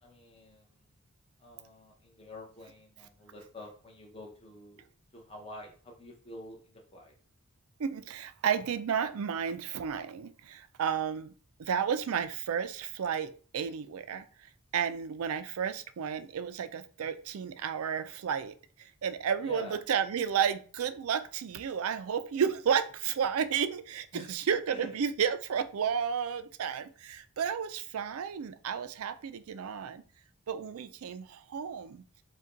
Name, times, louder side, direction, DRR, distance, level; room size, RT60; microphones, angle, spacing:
voice 1, 0.0-0.9 1.4-7.1 19.4-19.8 24.1-24.4 24.7-24.9, left 1 dB, 25° left, 0.9 m, -48 dB
voice 2, 7.8-11.3 11.6-30.0 30.5-32.1, right 7 dB, 70° right, 0.4 m, -32 dB
5.0 x 2.3 x 3.8 m
head